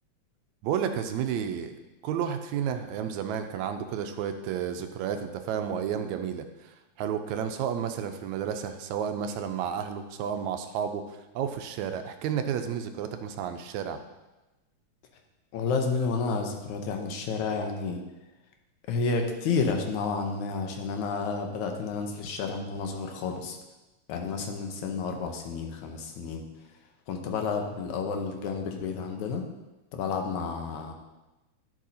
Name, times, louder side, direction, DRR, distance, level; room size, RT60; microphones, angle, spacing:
voice 1, 0.6-14.0, right 8 dB, 80° right, 7 dB, 1.9 m, -32 dB
voice 2, 15.5-18.0 18.9-23.6 24.1-26.4 27.1-29.5 29.9-30.9, left 4 dB, 85° left, 3 dB, 2.3 m, -30 dB
11.5 x 7.5 x 2.8 m, 1.1 s
omnidirectional pair, 3.3 m